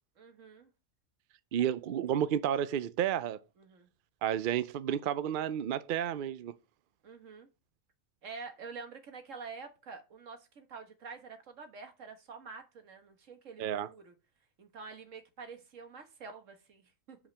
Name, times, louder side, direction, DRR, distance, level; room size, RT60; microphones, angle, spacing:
voice 1, 0.2-0.7 3.6-3.9 7.0-7.5 8.2-14.1 14.6-17.2, right 4 dB, 75° right, 1.7 m, -47 dB
voice 2, 1.5-3.4 4.2-6.5 13.6-13.9, right 10 dB, 60° right, 0.5 m, -31 dB
5.3 x 5.0 x 6.3 m
omnidirectional pair, 1.3 m